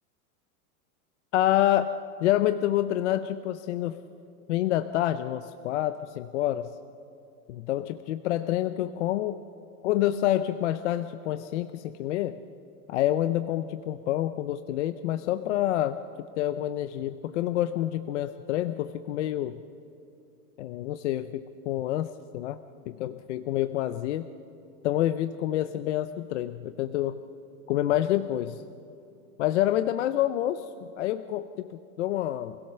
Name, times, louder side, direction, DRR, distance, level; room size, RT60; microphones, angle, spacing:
voice 1, 1.3-1.9 2.2-4.0 4.5-6.7 7.5-9.4 9.8-12.4 12.9-19.6 20.6-22.6 22.9-24.3 24.8-27.2 27.7-28.6 29.4-32.6, left 13 dB, 50° left, 11 dB, 0.6 m, -28 dB
27.0 x 16.5 x 6.7 m, 2.7 s
supercardioid pair, 175°, 45 cm